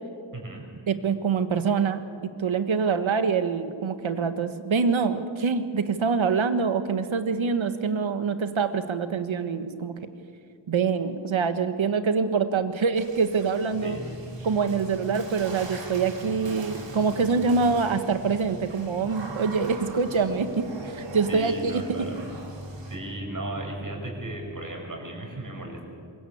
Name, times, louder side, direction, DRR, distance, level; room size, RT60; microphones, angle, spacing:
voice 1, 0.3-0.6 13.8-14.0 21.3-22.2 22.9-25.9, right 1 dB, 45° right, 1 dB, 6.2 m, -36 dB
voice 2, 0.9-9.9 10.7-14.0 14.4-22.1, right 5 dB, 80° right, 9 dB, 1.6 m, -25 dB
Water / Splash splatter, 13.0-23.0, right 3 dB, 65° right, 3.8 m, -43 dB
sound 1, 13.7-24.7, right 1 dB, 15° right, 3.6 m, -42 dB
23.5 x 21.5 x 8.7 m, 2.3 s
wide cardioid pair, 95°, 46 cm